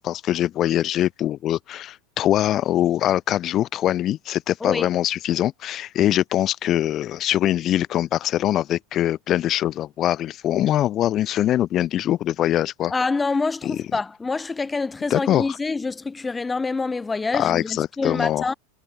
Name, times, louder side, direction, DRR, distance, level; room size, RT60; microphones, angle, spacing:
voice 1, 0.0-12.9 13.6-13.8 15.1-15.5 17.3-18.5, left 12 dB, 40° left, 3.6 m, -23 dB
voice 2, 12.9-18.5, left 4 dB, 15° left, 3.0 m, -26 dB
hypercardioid pair, 95°, 0 cm